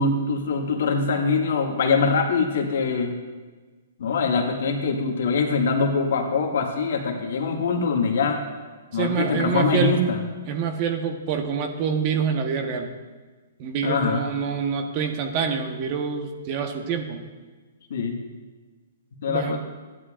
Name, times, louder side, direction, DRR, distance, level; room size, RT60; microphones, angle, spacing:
voice 1, 0.0-3.2 4.0-8.4 8.9-10.2 13.8-14.3 17.9-18.2 19.2-19.7, left 4 dB, 70° left, 2 dB, 1.6 m, -23 dB
voice 2, 8.9-9.9 10.5-12.9 13.6-17.2 19.3-19.6, right 6 dB, 40° right, 5 dB, 1.2 m, -26 dB
14.0 x 10.5 x 2.5 m, 1.4 s
hypercardioid pair, 135°, 0 cm